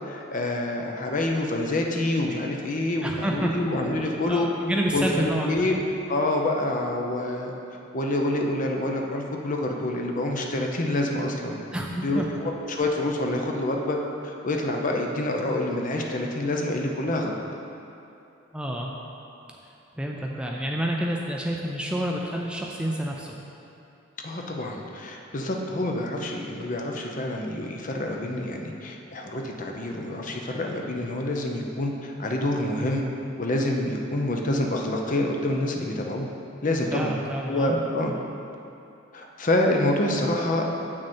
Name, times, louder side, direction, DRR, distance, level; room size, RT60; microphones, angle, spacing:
voice 1, 0.0-4.5 4.9-5.8 6.1-7.5 7.9-11.6 12.0-14.0 14.2-17.3 24.2-33.0 33.4-36.3 36.6-37.1 37.5-38.2 39.1-40.7, left 1 dB, 40° left, 1 dB, 0.7 m, -27 dB
voice 2, 3.0-3.7 4.3-5.7 11.7-12.3 18.5-18.9 20.0-23.4 36.9-37.8, right 1 dB, 5° right, -1 dB, 0.4 m, -28 dB
7.7 x 6.3 x 4.4 m, 2.8 s
head